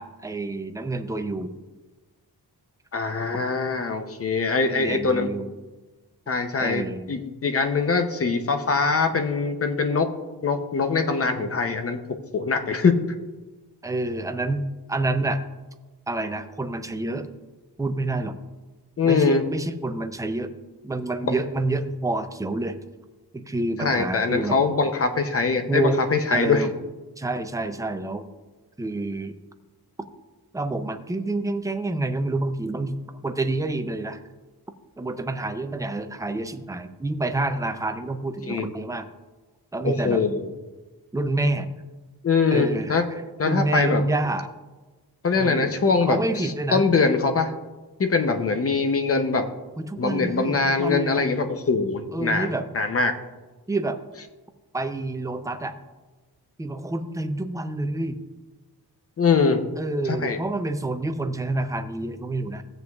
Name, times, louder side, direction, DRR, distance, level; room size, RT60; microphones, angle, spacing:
voice 1, 0.0-1.5 4.6-5.5 6.6-7.0 13.8-15.4 16.1-17.3 17.8-18.4 19.0-20.5 20.8-22.8 23.3-24.6 25.7-26.0 26.3-26.7 27.2-28.3 28.8-29.3 30.5-34.2 35.0-39.1 39.7-40.2 41.1-41.7 42.5-43.0 43.4-44.5 45.3-45.8 46.1-46.8 49.8-51.2 52.1-52.7 53.7-54.0 54.7-55.7 56.6-58.2 59.8-62.6, right 2 dB, 10° right, 8 dB, 0.4 m, -28 dB
voice 2, 2.9-5.3 6.3-10.1 10.4-12.0 12.3-13.0 19.0-19.4 23.8-26.7 38.5-38.7 39.8-40.5 42.2-43.0 43.4-44.0 45.2-47.5 48.0-49.4 50.0-53.1 59.2-59.6 60.1-60.4, left 4 dB, 35° left, 7 dB, 0.7 m, -23 dB
15.5 x 7.9 x 2.3 m, 1.2 s
wide cardioid pair, 180°, 40 cm